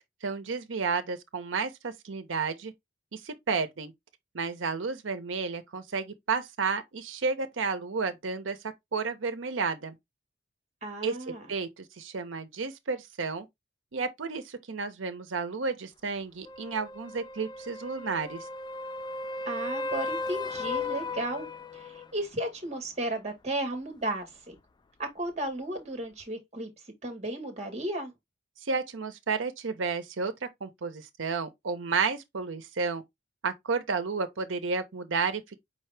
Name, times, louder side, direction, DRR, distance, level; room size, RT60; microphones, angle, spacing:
voice 1, 0.0-2.7 3.1-3.9 4.3-8.6 8.9-10.0 11.0-11.1 11.5-13.5 13.9-18.5 28.6-33.0 33.4-35.6, right 4 dB, 80° right, 0.7 m, -32 dB
voice 2, 10.8-11.5 19.4-21.5 21.7-24.6 25.0-26.7 27.0-28.1, right 1 dB, 35° right, 1.4 m, -34 dB
sound 1, 16.4-22.1 26.2-26.3, left 3 dB, 25° left, 0.3 m, -36 dB
5.3 x 2.8 x 3.3 m
head